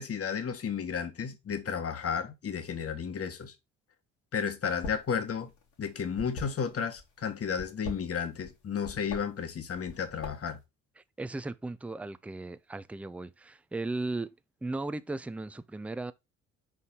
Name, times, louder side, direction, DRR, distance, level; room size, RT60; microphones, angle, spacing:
voice 1, 0.0-3.5 4.3-5.5 5.8-10.6, left 7 dB, 35° left, 1.3 m, -33 dB
sound 1, 4.7-5.1 5.4-7.0 7.5-8.5 8.8-9.2 9.7-10.6, left 3 dB, 75° left, 2.2 m, -40 dB
voice 2, 11.0-14.3 14.6-16.1, right 2 dB, 5° right, 0.4 m, -36 dB
5.3 x 4.9 x 3.8 m
figure-of-eight pair, 45°, 38 cm